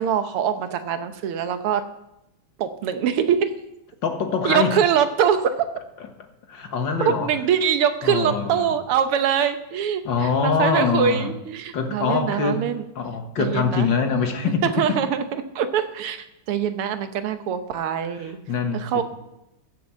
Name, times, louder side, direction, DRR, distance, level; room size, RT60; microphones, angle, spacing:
voice 1, 0.0-1.9 2.6-3.5 4.4-5.5 7.0-12.9 13.4-13.9 14.6-18.4 18.7-19.0, right 8 dB, 80° right, 9 dB, 1.9 m, -23 dB
voice 2, 4.0-4.8 6.5-7.3 8.0-8.7 10.1-11.3 11.7-12.6 13.0-15.0 18.5-19.0, left 5 dB, 60° left, 5 dB, 2.0 m, -24 dB
14.5 x 7.8 x 7.4 m, 0.88 s
omnidirectional pair, 2.4 m